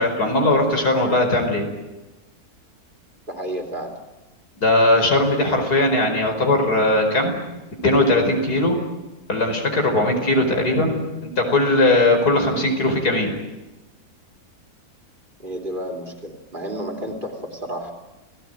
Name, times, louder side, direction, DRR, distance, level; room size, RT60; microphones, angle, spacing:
voice 1, 0.0-1.7 4.6-7.4 7.8-8.8 9.3-13.3, left 2 dB, 80° left, 3 dB, 5.5 m, -19 dB
voice 2, 3.3-4.0 15.4-17.9, right 1 dB, 30° right, 3 dB, 3.5 m, -31 dB
29.0 x 17.5 x 9.2 m, 1.1 s
omnidirectional pair, 1.6 m